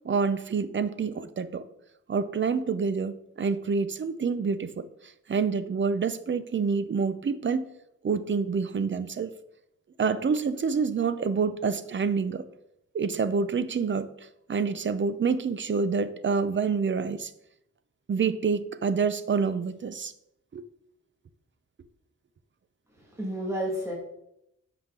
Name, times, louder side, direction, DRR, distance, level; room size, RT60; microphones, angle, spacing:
voice 1, 0.0-1.6 2.1-4.9 5.3-7.7 8.0-9.3 10.0-12.4 12.9-14.1 14.5-17.3 18.1-20.1 20.5-20.7, right 5 dB, 40° right, 12 dB, 0.6 m, -27 dB
voice 2, 22.9-23.9, equal, 10° right, -4 dB, 2.0 m, -31 dB
11.0 x 6.4 x 3.8 m, 0.82 s
wide cardioid pair, 165°, 31 cm